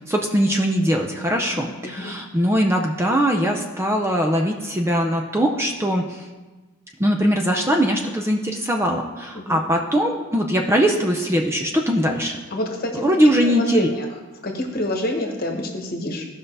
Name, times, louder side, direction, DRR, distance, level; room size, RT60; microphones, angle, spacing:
voice 1, 0.1-6.3 7.0-12.4 13.0-13.9, equal, 10° right, 2 dB, 0.5 m, -21 dB
voice 2, 1.3-2.1 9.3-9.6 12.5-13.0 13.4-14.1 14.4-16.3, left 1 dB, 45° left, 2 dB, 1.3 m, -27 dB
15.5 x 5.5 x 3.4 m, 1.2 s
head